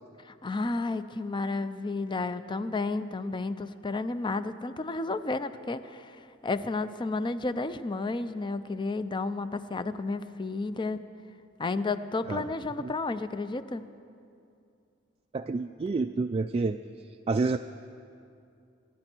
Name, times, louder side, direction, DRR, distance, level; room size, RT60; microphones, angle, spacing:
voice 1, 0.2-11.0 11.6-13.9, left 3 dB, 25° left, 13 dB, 0.5 m, -32 dB
voice 2, 15.3-16.8 17.3-17.6, right 3 dB, 30° right, 6 dB, 0.3 m, -28 dB
26.5 x 11.5 x 4.5 m, 2.5 s
head